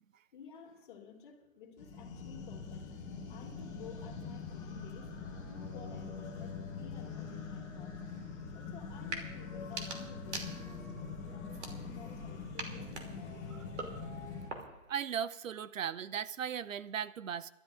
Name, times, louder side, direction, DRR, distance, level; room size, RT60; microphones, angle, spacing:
voice 1, 0.3-2.9 3.3-8.0 8.5-13.7, left 6 dB, 40° left, 2 dB, 2.3 m, -53 dB
sound 1, 1.8-14.5, left 4 dB, 5° left, 0.8 m, -43 dB
sound 2, 9.0-9.3 9.6-10.9 11.5-12.2 12.6-14.9, right 3 dB, 55° right, 2.8 m, -44 dB
voice 2, 14.9-17.5, right 8 dB, 70° right, 17 dB, 0.6 m, -37 dB
29.0 x 12.5 x 2.5 m, 0.95 s
hypercardioid pair, 155°, 40 cm